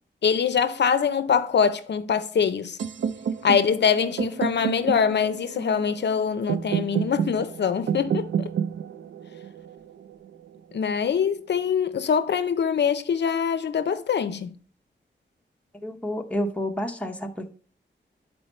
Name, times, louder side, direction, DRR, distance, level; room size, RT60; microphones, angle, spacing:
voice 1, 0.2-2.8 3.4-8.3 10.7-14.5, left 7 dB, 65° left, 0.5 m, -23 dB
sound 1, 2.8-10.7, right 7 dB, 80° right, 0.5 m, -30 dB
voice 2, 15.8-17.3, equal, 5° left, 0.7 m, -29 dB
9.4 x 4.4 x 4.2 m
wide cardioid pair, 145°, 19 cm